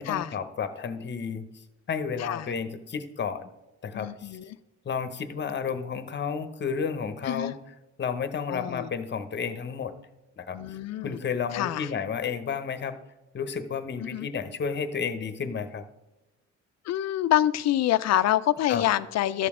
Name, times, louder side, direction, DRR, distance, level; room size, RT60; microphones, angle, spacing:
voice 1, 0.0-1.5 1.9-3.5 3.8-4.4 4.8-7.6 8.0-9.9 10.4-10.6 11.0-13.0 13.3-15.8 18.7-18.9, left 6 dB, 35° left, 11 dB, 0.8 m, -31 dB
voice 2, 2.2-2.5 3.9-4.5 7.2-7.5 8.5-8.9 10.5-11.2 11.5-11.9 14.0-14.3 16.8-19.5, left 12 dB, 60° left, 15 dB, 0.4 m, -26 dB
12.5 x 6.9 x 3.6 m, 1.0 s
cardioid pair, 90°, 30 cm